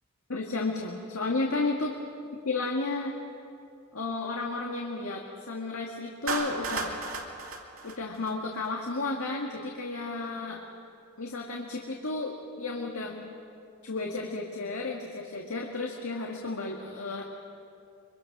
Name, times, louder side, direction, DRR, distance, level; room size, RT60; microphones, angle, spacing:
voice 1, 0.3-2.0 2.5-3.2 3.9-7.0 7.8-10.6 11.2-13.3 13.8-17.2, left 3 dB, 75° left, 0 dB, 1.9 m, -33 dB
Clapping, 6.3-8.7, right 3 dB, 65° right, 2.7 m, -34 dB
25.0 x 23.5 x 6.0 m, 2.5 s
head